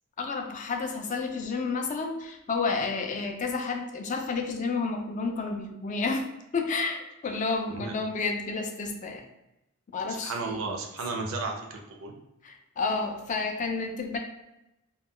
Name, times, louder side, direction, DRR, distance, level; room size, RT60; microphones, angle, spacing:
voice 1, 0.2-6.3 6.5-9.2 9.9-10.6 12.4-14.2, left 4 dB, 35° left, 4 dB, 0.3 m, -30 dB
voice 2, 10.1-12.1, right 3 dB, 65° right, 2 dB, 0.5 m, -34 dB
2.2 x 2.1 x 3.6 m, 0.90 s
head